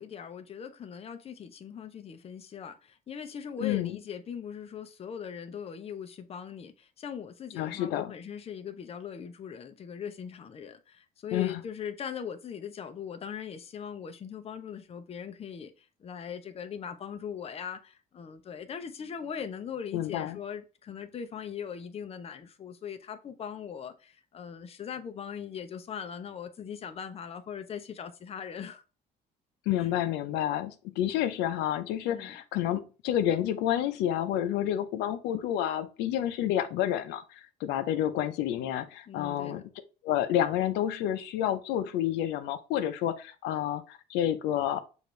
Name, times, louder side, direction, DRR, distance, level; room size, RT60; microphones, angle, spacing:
voice 1, 0.0-28.8 29.8-29.9 32.1-32.4 39.1-39.6, left 7 dB, 35° left, 0.7 m, -40 dB
voice 2, 3.6-4.0 7.6-8.1 11.3-11.6 19.9-20.4 29.7-39.6 40.0-44.8, left 11 dB, 90° left, 0.6 m, -29 dB
6.4 x 2.6 x 3.1 m
cardioid pair, 110°, 17 cm